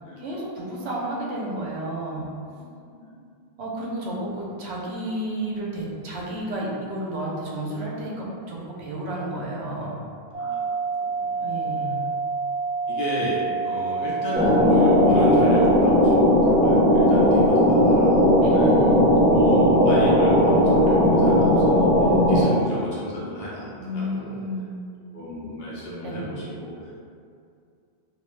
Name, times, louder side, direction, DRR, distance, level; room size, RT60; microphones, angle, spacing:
voice 1, 0.2-2.3 3.6-10.0 11.4-12.0 18.4-19.1 22.0-22.4 23.8-24.7 26.0-26.3, right 1 dB, 90° right, -4 dB, 0.9 m, -31 dB
voice 2, 2.5-3.1 10.4-10.6 11.2-11.9 12.9-18.7 19.3-21.9 22.3-24.4 25.1-27.1, equal, 65° left, -7 dB, 0.9 m, -33 dB
sound 1, 10.3-15.7, right 4 dB, 45° right, 0.7 m, -28 dB
sound 2, 14.3-22.4, equal, 5° right, 0.3 m, -17 dB
2.8 x 2.0 x 3.1 m, 2.4 s
omnidirectional pair, 1.1 m